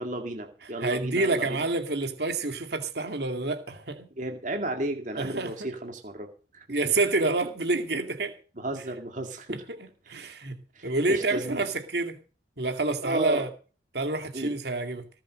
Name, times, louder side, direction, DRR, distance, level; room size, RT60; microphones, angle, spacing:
voice 1, 0.0-1.5 4.2-6.3 6.5-6.7 8.6-9.6 10.8-11.7 13.0-13.5 14.3-14.5, right 1 dB, 40° right, 2.2 m, -33 dB
voice 2, 0.6-4.1 5.1-5.7 6.7-8.3 9.5-9.8 10.1-10.6 10.8-12.2 12.6-13.5 13.9-15.1, right 3 dB, 60° right, 2.4 m, -28 dB
19.5 x 7.6 x 6.5 m
head